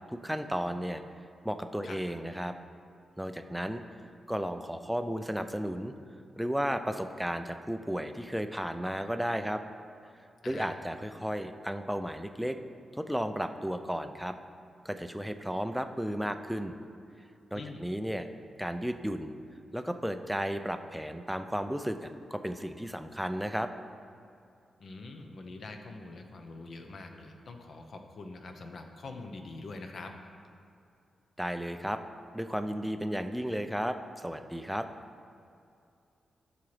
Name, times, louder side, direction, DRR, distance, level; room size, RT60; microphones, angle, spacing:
voice 1, 0.1-1.0 1.4-2.5 3.2-3.8 4.3-5.9 6.4-9.6 10.5-12.6 13.0-14.3 14.8-16.8 17.5-18.3 18.6-19.3 19.7-23.7 31.4-32.0 32.3-34.9, equal, ahead, 8 dB, 0.4 m, -33 dB
voice 2, 17.5-17.8 24.8-30.1, left 3 dB, 55° left, 5 dB, 0.7 m, -44 dB
12.5 x 5.9 x 3.3 m, 2.5 s
wide cardioid pair, 125°, 0 cm